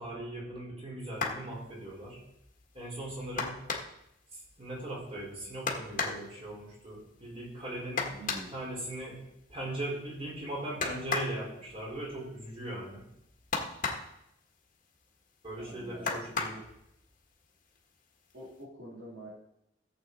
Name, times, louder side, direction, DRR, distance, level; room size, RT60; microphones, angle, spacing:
voice 1, 0.0-2.2 2.7-3.5 4.3-8.1 8.5-9.2 9.5-13.0 15.4-16.5, right 1 dB, 35° right, -4 dB, 4.2 m, -39 dB
sound 1, 1.1-1.5 3.4-4.1 5.7-6.3 8.0-8.5 10.8-11.4 13.5-14.2 16.1-16.7 17.8-17.9 18.3-18.5, left 4 dB, 45° left, 1.6 m, -33 dB
voice 2, 8.1-8.7 15.6-16.1 16.5-16.6 18.3-19.3, right 1 dB, 60° right, -5 dB, 2.6 m, -47 dB
15.0 x 7.8 x 4.0 m, 0.82 s
head